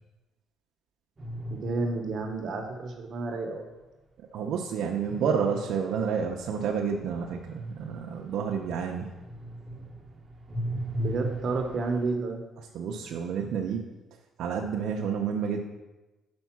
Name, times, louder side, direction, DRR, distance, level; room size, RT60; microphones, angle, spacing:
sound 1, 1.2-2.8 5.1-8.9 9.2-12.1, equal, 30° right, 0.9 m, -37 dB
voice 1, 1.5-3.7 11.0-12.4, right 3 dB, 50° right, 3 dB, 0.9 m, -31 dB
voice 2, 4.3-9.1 12.7-13.9 14.4-15.6, right 6 dB, 75° right, 0 dB, 0.6 m, -30 dB
5.2 x 4.5 x 5.9 m, 1.1 s
cardioid pair, 120°, 0 cm